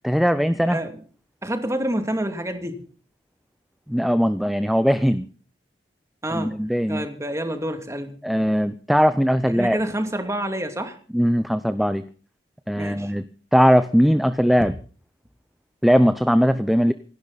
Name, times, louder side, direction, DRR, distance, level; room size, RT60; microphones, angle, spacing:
voice 1, 0.0-0.8 3.9-5.2 6.3-7.1 8.2-9.8 11.1-12.0 12.7-13.2 13.5-14.7 15.8-16.9, equal, ahead, 0.7 m, -19 dB
voice 2, 0.7-1.0 1.4-2.8 6.2-6.6 6.9-8.2 9.5-11.0 12.8-13.1, right 1 dB, 15° right, 2.6 m, -28 dB
27.0 x 12.0 x 4.1 m
head